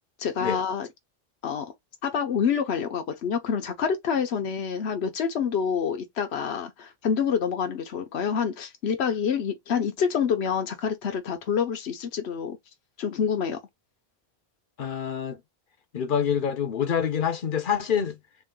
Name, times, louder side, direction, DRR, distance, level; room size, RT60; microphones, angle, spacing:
voice 1, 0.2-0.9 1.4-1.7 2.0-12.6 13.0-13.6, left 7 dB, 85° left, 1.1 m, -27 dB
voice 2, 14.8-15.4 15.9-18.2, left 8 dB, 55° left, 0.8 m, -26 dB
3.8 x 2.4 x 3.7 m
omnidirectional pair, 1.1 m